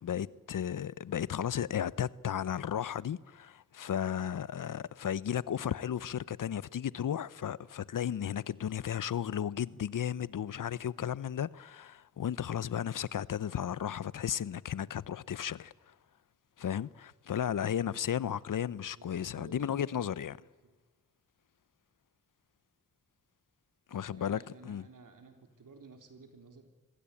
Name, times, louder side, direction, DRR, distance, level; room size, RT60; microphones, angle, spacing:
voice 1, 0.0-15.7 16.6-20.4 23.9-24.8, left 9 dB, 75° left, 0.8 m, -34 dB
voice 2, 18.9-20.1 20.6-20.8 23.9-26.7, right 4 dB, 75° right, 3.8 m, -54 dB
26.0 x 21.5 x 8.5 m
cardioid pair, 75°, 33 cm